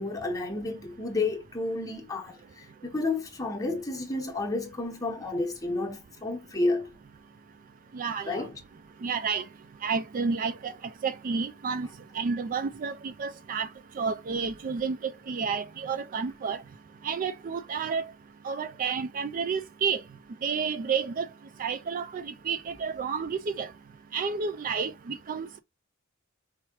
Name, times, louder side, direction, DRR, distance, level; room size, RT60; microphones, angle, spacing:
voice 1, 0.0-6.9 8.3-8.5, left 2 dB, 15° left, 1.1 m, -31 dB
voice 2, 7.9-8.4 9.0-9.4 9.8-10.7 11.0-11.9 12.1-13.7 14.0-15.0 15.3-16.6 17.0-18.0 18.4-20.0 20.4-21.2 21.6-23.7 24.1-25.6, right 5 dB, 40° right, 0.3 m, -30 dB
4.5 x 3.1 x 2.9 m
head